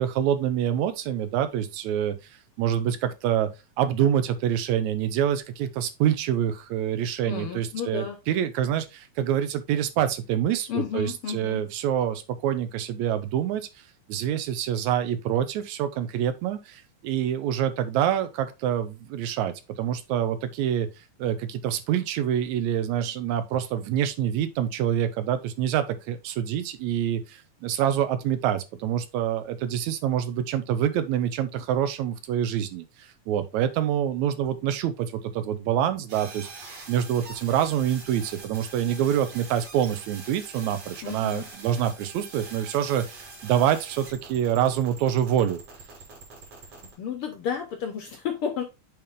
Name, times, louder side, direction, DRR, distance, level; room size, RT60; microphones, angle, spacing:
voice 1, 0.0-2.2 2.6-3.5 3.8-13.7 14.1-20.9 21.2-45.6, right 10 dB, 75° right, 2.1 m, -26 dB
voice 2, 7.2-8.2 10.7-11.6 41.0-41.5 47.0-48.6, left 8 dB, 65° left, 1.5 m, -32 dB
sound 1, 36.1-46.9, right 3 dB, 55° right, 3.2 m, -44 dB
8.3 x 3.5 x 3.6 m
omnidirectional pair, 3.4 m